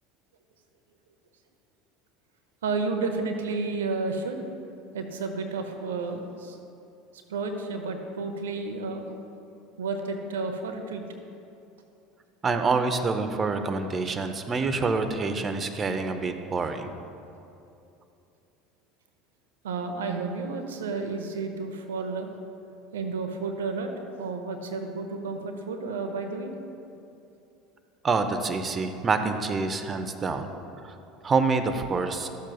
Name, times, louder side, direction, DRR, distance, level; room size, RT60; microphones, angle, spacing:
voice 1, 2.6-4.4 4.9-6.6 7.3-9.1 9.8-11.0 19.6-22.3 22.9-23.9 24.2-26.5, right 3 dB, 75° right, 5 dB, 0.7 m, -31 dB
voice 2, 12.4-16.9 28.0-30.5 30.8-30.9 31.2-32.3, right 4 dB, 30° right, 8 dB, 0.7 m, -27 dB
13.0 x 7.3 x 2.3 m, 2.7 s
figure-of-eight pair, 70°, 0 cm